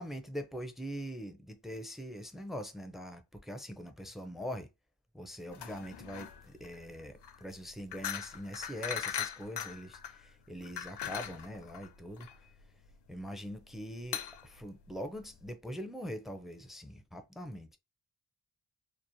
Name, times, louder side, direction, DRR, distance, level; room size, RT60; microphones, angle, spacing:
voice 1, 0.0-4.7 5.1-12.3 13.1-17.8, equal, ahead, 0.4 m, -43 dB
sound 1, 5.5-15.5, left 8 dB, 60° left, 0.5 m, -41 dB
2.9 x 2.1 x 2.6 m
cardioid pair, 45°, 47 cm